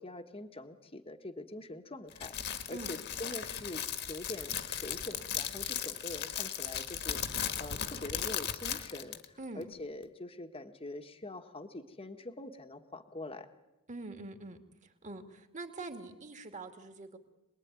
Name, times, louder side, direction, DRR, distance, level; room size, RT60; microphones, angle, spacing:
voice 1, 0.0-13.5, left 2 dB, 25° left, 7 dB, 1.5 m, -44 dB
Crackle, 2.1-9.3, left 9 dB, 50° left, 1.8 m, -37 dB
voice 2, 13.9-17.2, right 2 dB, 35° right, 6 dB, 2.5 m, -44 dB
27.5 x 20.5 x 9.6 m, 1.0 s
head